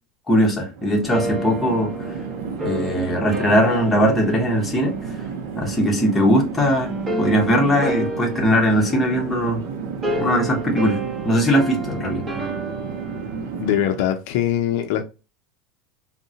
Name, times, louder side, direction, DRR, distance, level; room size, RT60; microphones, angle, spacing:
voice 1, 0.3-2.1 2.6-5.0 5.6-6.9 7.2-9.6 10.2-12.2, equal, 10° left, 0.8 m, -20 dB
Chatter / Fixed-wing aircraft airplane, 0.7-14.1, right 5 dB, 70° right, 0.5 m, -32 dB
sound 1, 1.1-5.7 6.8-14.0, equal, 20° right, 1.0 m, -31 dB
voice 2, 13.6-15.0, left 11 dB, 65° left, 0.4 m, -22 dB
3.6 x 2.1 x 2.7 m
supercardioid pair, 150°, 0 cm